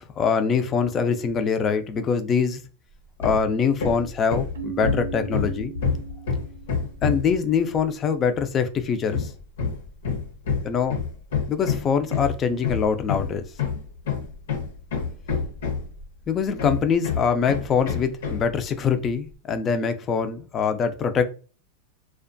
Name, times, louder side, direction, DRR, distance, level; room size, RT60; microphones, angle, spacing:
voice 1, 0.0-2.6 3.2-5.7 7.0-9.3 10.6-11.0 11.5-13.4 16.3-21.2, left 6 dB, 25° left, 0.4 m, -24 dB
Hammer, 3.2-3.5 3.8-7.4 9.1-16.0 16.6-18.5, left 6 dB, 80° left, 0.8 m, -27 dB
Keyboard (musical), 4.6-7.2, right 16 dB, 85° right, 0.4 m, -38 dB
2.4 x 2.2 x 2.5 m
supercardioid pair, 135°, 0 cm